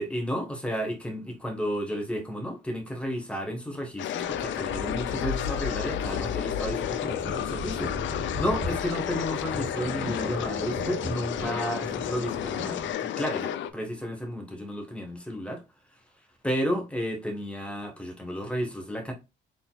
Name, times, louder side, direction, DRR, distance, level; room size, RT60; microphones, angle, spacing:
voice 1, 0.0-15.6 16.4-19.1, equal, 5° left, 1.4 m, -32 dB
sound 1, 4.0-13.7, left 10 dB, 70° left, 0.5 m, -32 dB
sound 2, 4.2-12.9, left 2 dB, 35° right, 1.5 m, -36 dB
4.0 x 3.9 x 2.4 m
cardioid pair, 90°, 20 cm